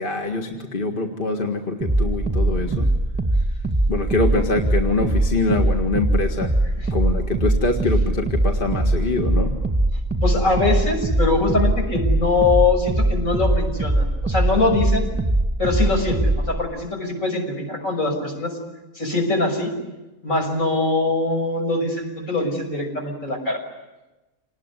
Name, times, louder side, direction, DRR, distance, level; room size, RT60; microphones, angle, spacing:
voice 1, 0.0-2.9 3.9-6.5 6.9-9.5, left 3 dB, 40° left, 3 dB, 2.0 m, -24 dB
sound 1, 1.8-16.6, right 1 dB, 5° right, 1.8 m, -22 dB
voice 2, 2.5-2.8 6.6-6.9 10.2-15.1 15.6-18.6 18.9-19.7 20.2-23.6, left 3 dB, 65° left, 3 dB, 6.8 m, -23 dB
28.0 x 20.0 x 9.8 m, 1.1 s
omnidirectional pair, 1.5 m